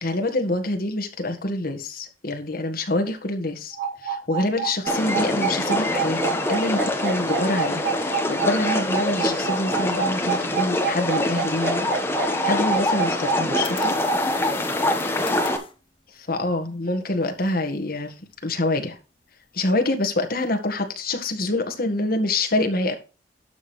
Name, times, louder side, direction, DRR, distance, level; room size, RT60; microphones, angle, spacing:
voice 1, 0.0-3.8 4.0-11.9 12.4-13.9 16.1-18.1 18.4-19.0 19.5-22.9, left 2 dB, 55° left, 1.7 m, -26 dB
sound 1, 3.8-14.2, right 7 dB, 75° right, 3.6 m, -27 dB
sound 2, 4.9-15.6, left 1 dB, 15° left, 1.3 m, -25 dB
sound 3, 13.3-15.7, left 5 dB, 30° left, 1.0 m, -37 dB
12.0 x 6.1 x 3.3 m
head